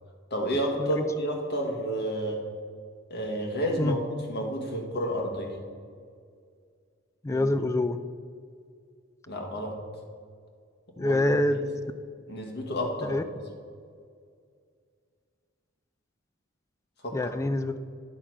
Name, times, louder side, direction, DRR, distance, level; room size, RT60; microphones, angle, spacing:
voice 1, 0.3-2.4 3.1-5.6 7.3-7.5 9.3-9.8 11.0-11.7 12.3-13.2 17.0-17.3, equal, 55° left, 1 dB, 1.3 m, -31 dB
voice 2, 7.2-8.0 11.0-11.7 13.1-13.2 17.1-17.9, left 1 dB, 15° left, 10 dB, 0.3 m, -26 dB
10.0 x 3.8 x 6.0 m, 2.2 s
head